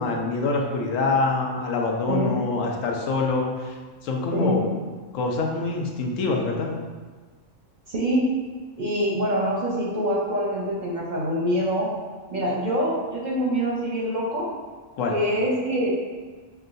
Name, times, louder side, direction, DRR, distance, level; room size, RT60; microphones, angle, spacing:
voice 1, 0.0-3.7 4.0-4.7 5.1-6.7 15.0-15.1, left 3 dB, 85° left, 1 dB, 1.0 m, -25 dB
voice 2, 7.9-8.3 8.8-11.9 12.3-14.5 15.1-15.9, equal, 50° right, -5 dB, 0.6 m, -25 dB
6.0 x 2.2 x 2.6 m, 1.4 s
omnidirectional pair, 1.3 m